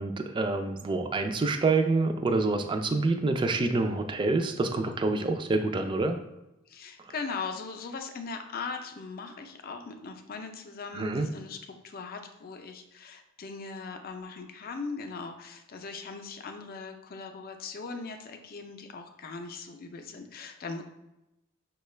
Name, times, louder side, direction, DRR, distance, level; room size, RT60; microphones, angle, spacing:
voice 1, 0.0-6.2 10.9-11.3, right 3 dB, 20° right, 6 dB, 0.3 m, -27 dB
voice 2, 6.7-11.6 11.8-20.8, left 4 dB, 45° left, 6 dB, 0.4 m, -39 dB
5.6 x 2.2 x 3.1 m, 0.93 s
head